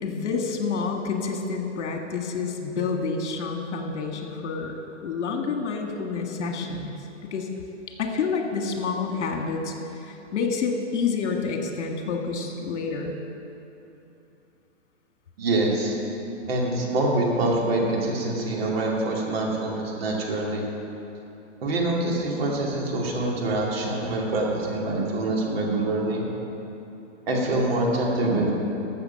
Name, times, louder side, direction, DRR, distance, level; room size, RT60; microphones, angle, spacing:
voice 1, 0.0-7.0 7.2-7.5 8.0-13.1, left 5 dB, 65° left, 2 dB, 1.8 m, -28 dB
voice 2, 15.4-15.9 16.5-20.6 21.6-26.2 27.3-28.5, right 2 dB, 50° right, -2 dB, 2.5 m, -25 dB
14.5 x 7.0 x 5.8 m, 2.9 s
hypercardioid pair, 150°, 37 cm